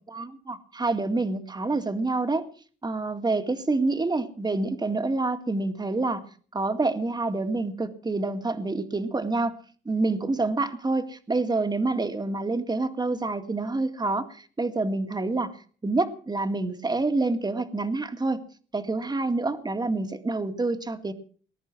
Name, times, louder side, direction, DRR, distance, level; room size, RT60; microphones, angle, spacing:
voice 1, 0.1-2.5 2.8-6.2 6.5-9.6 9.9-15.5 15.8-18.4 18.7-21.1, right 3 dB, 20° right, 8 dB, 2.1 m, -27 dB
20.5 x 11.0 x 6.2 m, 0.44 s
cardioid pair, 90°, 20 cm